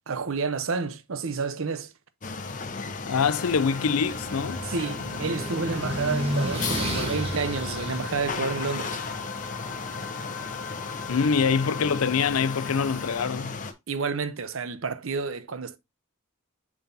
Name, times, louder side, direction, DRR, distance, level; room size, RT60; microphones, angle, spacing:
voice 1, 0.1-1.9 4.6-9.0 13.9-15.8, right 4 dB, 65° right, 0.7 m, -30 dB
sound 1, 2.2-13.7, left 4 dB, 35° left, 0.8 m, -35 dB
voice 2, 3.1-4.6 5.8-5.9 11.1-13.6, left 6 dB, 85° left, 0.5 m, -25 dB
sound 2, 3.2-13.3, left 6 dB, 10° left, 1.8 m, -41 dB
sound 3, 3.3-9.6, equal, 30° right, 1.6 m, -33 dB
7.1 x 6.2 x 2.6 m
head